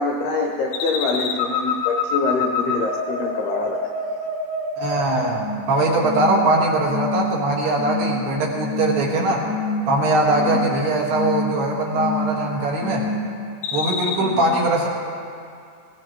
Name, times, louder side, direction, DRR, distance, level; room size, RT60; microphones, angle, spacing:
voice 1, 0.0-3.8 10.4-10.6 14.2-14.3, left 3 dB, 90° left, 1 dB, 2.2 m, -25 dB
sound 1, 0.7-5.7 6.0-6.5 6.9-7.4 7.8-8.2 8.6-9.1 9.4-10.0 10.3-10.8 11.1-11.6 11.9-12.5 12.8-13.3 13.6-14.2, left 4 dB, 75° left, 3.8 m, -26 dB
voice 2, 4.8-9.4 9.9-13.1 13.7-14.9, right 2 dB, 65° right, -3 dB, 3.1 m, -21 dB
21.0 x 17.5 x 2.9 m, 2.4 s
omnidirectional pair, 6.0 m